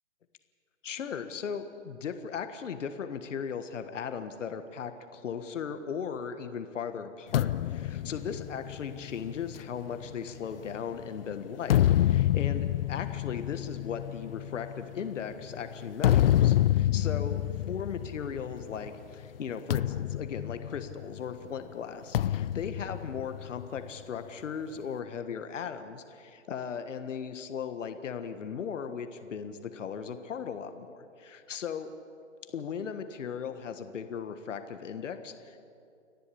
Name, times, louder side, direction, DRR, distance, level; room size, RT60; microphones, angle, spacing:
voice 1, 0.8-31.9 32.5-35.6, left 7 dB, 70° left, 9 dB, 1.4 m, -37 dB
sound 1, 7.3-10.9 11.4-18.9 19.1-19.4 19.7-21.3 22.1-23.9, left 12 dB, 50° left, 0.4 m, -28 dB
30.0 x 11.0 x 8.5 m, 2.5 s
hypercardioid pair, 135°, 38 cm